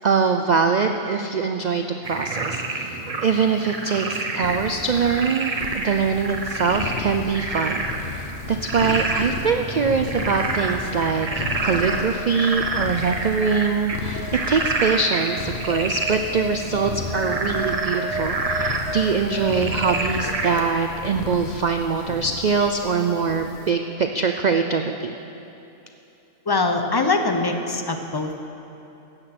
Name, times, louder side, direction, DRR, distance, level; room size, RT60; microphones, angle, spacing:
voice 1, 0.0-25.1, right 5 dB, 90° right, 5 dB, 0.3 m, -23 dB
Frog, 2.0-20.7, right 3 dB, 30° right, 0.8 m, -28 dB
sound 1, 4.4-23.7, left 7 dB, 55° left, 0.7 m, -35 dB
voice 2, 26.5-28.3, left 3 dB, 25° left, 5 dB, 0.5 m, -22 dB
14.5 x 9.0 x 5.9 m, 2.9 s
omnidirectional pair, 1.4 m